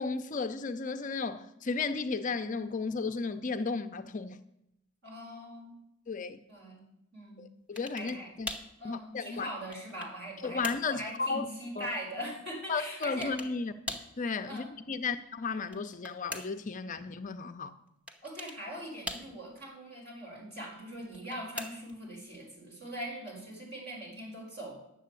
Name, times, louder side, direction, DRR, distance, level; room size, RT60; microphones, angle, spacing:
voice 1, 0.0-4.4 6.1-6.4 7.4-8.5 8.8-9.5 10.4-11.5 11.8-11.9 12.7-13.7 14.2-17.7, left 4 dB, 35° left, 0.5 m, -34 dB
voice 2, 5.0-5.7 6.5-6.8 7.1-7.5 8.0-8.3 8.8-10.6 10.9-13.3 14.5-14.7 18.2-24.8, equal, 50° right, 4.9 m, -41 dB
sound 1, 7.8-8.2 8.5-8.7 9.4-10.2 10.6-10.9 13.0-13.5 13.9-14.2 15.6-16.7 18.1-18.6 19.1-19.6 21.0-22.0, left 1 dB, 5° right, 0.9 m, -41 dB
10.5 x 7.6 x 8.1 m
head